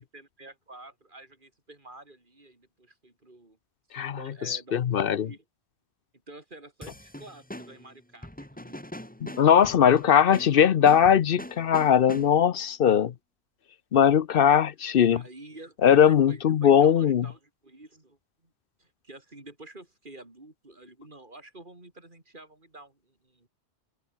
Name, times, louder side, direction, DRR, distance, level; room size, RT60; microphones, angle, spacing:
voice 1, 0.0-3.6 3.9-5.4 6.3-8.8 10.6-10.9 15.1-15.8 16.0-18.5 18.8-23.5, right 2 dB, 45° right, 4.5 m, -49 dB
voice 2, 4.5-5.3 9.2-13.1 13.9-15.2 15.8-17.3, left 8 dB, 60° left, 0.8 m, -20 dB
sound 1, 6.8-12.6, left 1 dB, 10° left, 2.0 m, -43 dB
open air
omnidirectional pair, 1.1 m